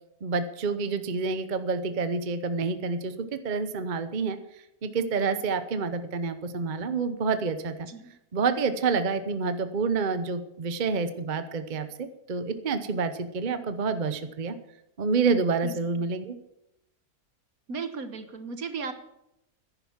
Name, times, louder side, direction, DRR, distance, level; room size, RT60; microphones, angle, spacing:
voice 1, 0.2-4.4 4.8-7.7 8.3-14.6 15.0-16.4, right 4 dB, 35° right, 10 dB, 0.9 m, -28 dB
voice 2, 15.6-16.1 17.7-18.9, right 5 dB, 65° right, 9 dB, 1.7 m, -36 dB
11.0 x 10.5 x 7.3 m, 0.84 s
omnidirectional pair, 1.6 m